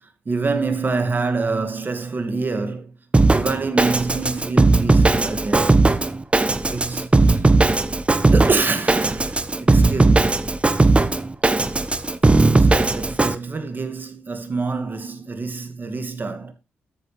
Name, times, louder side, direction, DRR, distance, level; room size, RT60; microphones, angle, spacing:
voice 1, 0.3-2.9 3.3-5.8 6.7-7.5 8.3-10.5 12.4-16.5, right 3 dB, 35° right, 2.3 m, -26 dB
Drum kit, 3.1-13.3, right 3 dB, 20° right, 1.0 m, -17 dB
13.5 x 8.1 x 3.4 m
hypercardioid pair, 45°, 5 cm